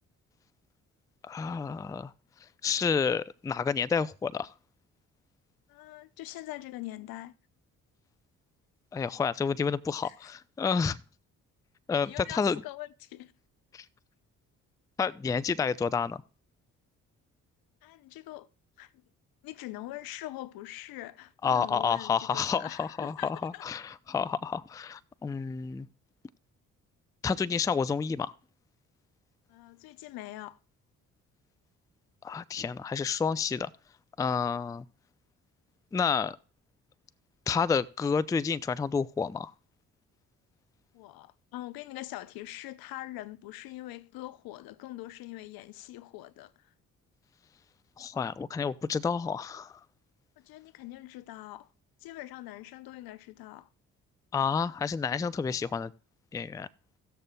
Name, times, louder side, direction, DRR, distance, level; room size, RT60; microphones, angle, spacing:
voice 1, 1.2-2.1 2.6-4.5 8.9-11.0 11.9-12.6 13.7-13.8 15.0-16.2 21.4-25.9 27.2-28.3 32.2-33.7 34.2-34.8 35.9-36.4 37.5-39.5 48.0-49.7 54.3-55.9 56.3-56.7, left 6 dB, 10° left, 0.3 m, -29 dB
voice 2, 5.7-7.3 10.0-10.3 12.0-13.3 17.8-18.5 18.8-18.9 19.4-23.6 29.5-30.6 40.9-46.7 50.4-51.7 52.0-53.7, left 16 dB, 70° left, 0.6 m, -43 dB
18.0 x 6.8 x 2.2 m
hypercardioid pair, 50°, 38 cm